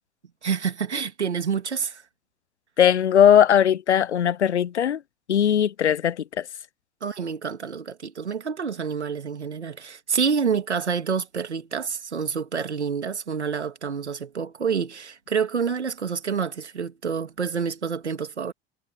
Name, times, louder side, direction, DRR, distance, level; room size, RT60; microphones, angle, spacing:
voice 1, 0.4-2.0 7.0-18.5, right 6 dB, 85° right, 2.8 m, -28 dB
voice 2, 2.8-5.0 5.3-6.5, left 9 dB, 85° left, 0.9 m, -19 dB
figure-of-eight pair, 75°, 33 cm